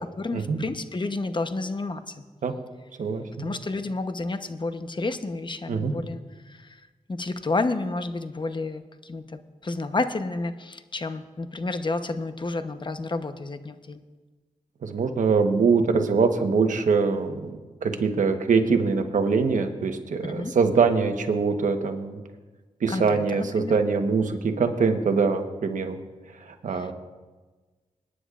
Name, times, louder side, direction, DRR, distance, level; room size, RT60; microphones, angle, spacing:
voice 1, 0.2-2.1 3.4-6.2 6.5-6.8 7.1-14.0 20.2-20.6 22.9-23.7 26.7-26.9, left 3 dB, 35° left, 9 dB, 0.9 m, -30 dB
voice 2, 3.0-3.5 5.7-5.9 14.8-22.2 22.8-26.0 26.4-26.9, right 5 dB, 75° right, 6 dB, 1.1 m, -23 dB
25.5 x 9.7 x 2.5 m, 1.3 s
cardioid pair, 55°, 13 cm